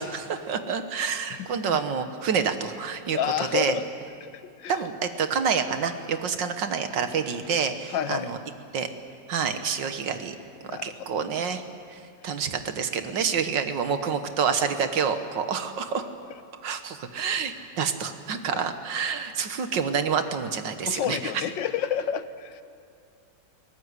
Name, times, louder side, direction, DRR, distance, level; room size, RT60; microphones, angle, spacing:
voice 1, 0.0-3.8 4.7-8.4 8.7-8.9 9.3-10.4 10.8-11.6 12.2-16.1 16.6-21.4, right 6 dB, 80° right, 8 dB, 2.0 m, -28 dB
voice 2, 1.3-1.8 3.1-3.9 4.2-4.8 7.9-8.3 10.7-10.9 18.5-18.6 20.8-22.6, left 9 dB, 85° left, 11 dB, 1.7 m, -30 dB
22.0 x 18.5 x 9.7 m, 2.3 s
omnidirectional pair, 2.0 m